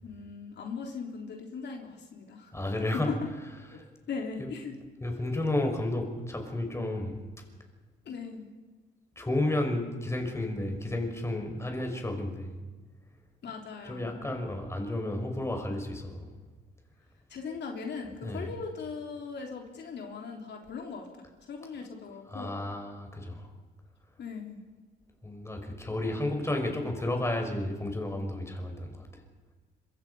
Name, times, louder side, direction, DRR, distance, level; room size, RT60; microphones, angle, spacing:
voice 1, 0.0-2.5 2.9-3.2 3.7-3.8 4.1-4.8 8.1-8.5 13.4-14.2 17.3-22.6 24.2-24.6, left 5 dB, 60° left, 2 dB, 3.6 m, -39 dB
voice 2, 2.5-3.1 3.8-3.9 4.4-4.5 5.0-7.2 9.2-12.6 13.8-16.3 18.2-18.5 22.3-23.5 25.2-29.2, left 1 dB, 15° left, 3 dB, 5.5 m, -32 dB
26.0 x 22.5 x 5.6 m, 1.3 s
cardioid pair, 90°, 20 cm